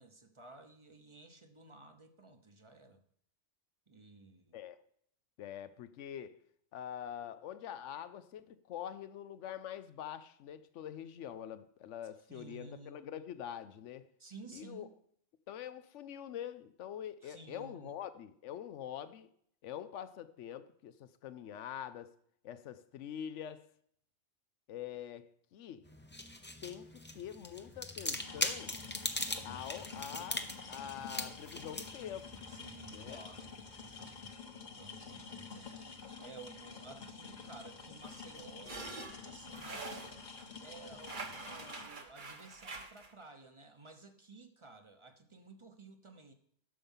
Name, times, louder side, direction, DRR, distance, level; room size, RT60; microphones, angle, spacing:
voice 1, 0.0-3.0 3.9-4.6 12.3-13.0 14.2-14.9 17.2-17.9 32.5-33.6 34.8-39.9 40.2-46.3, right 3 dB, 30° right, 0.9 m, -54 dB
voice 2, 5.4-6.4 6.7-14.1 14.5-14.9 15.5-19.3 19.6-22.1 22.4-23.7 24.7-25.9 26.6-28.8 29.4-32.4 32.9-33.2, left 10 dB, 85° left, 1.0 m, -45 dB
sound 1, 25.8-34.3, left 1 dB, 10° left, 0.6 m, -41 dB
sound 2, 28.2-41.9, left 5 dB, 40° left, 1.2 m, -49 dB
sound 3, 38.0-40.5 41.0-43.1, right 3 dB, 45° right, 1.2 m, -46 dB
11.5 x 6.9 x 5.5 m
omnidirectional pair, 1.2 m